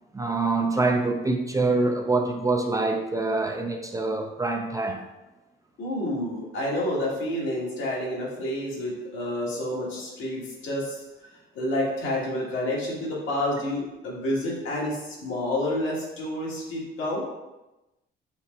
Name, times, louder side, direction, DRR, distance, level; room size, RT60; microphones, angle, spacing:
voice 1, 0.1-5.0, right 3 dB, 15° right, 3 dB, 0.3 m, -25 dB
voice 2, 5.8-11.0 11.5-17.2, left 1 dB, 80° left, -4 dB, 1.4 m, -29 dB
4.3 x 2.0 x 4.0 m, 1.0 s
cardioid pair, 90°, 20 cm